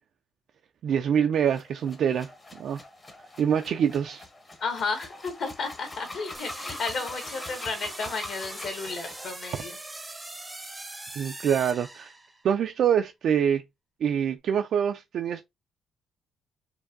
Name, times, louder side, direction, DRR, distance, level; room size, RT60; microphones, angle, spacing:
voice 1, 0.8-2.3 2.6-2.8 3.4-4.2 11.2-12.2 12.4-13.6 14.0-15.4, right 8 dB, 60° right, 0.3 m, -25 dB
sound 1, 1.5-9.3, left 2 dB, 20° left, 0.8 m, -43 dB
voice 2, 4.6-9.7, left 4 dB, 60° left, 1.5 m, -33 dB
sound 2, 6.3-12.6, right 2 dB, 10° right, 0.6 m, -41 dB
4.6 x 2.6 x 2.5 m
cardioid pair, 155°, 0 cm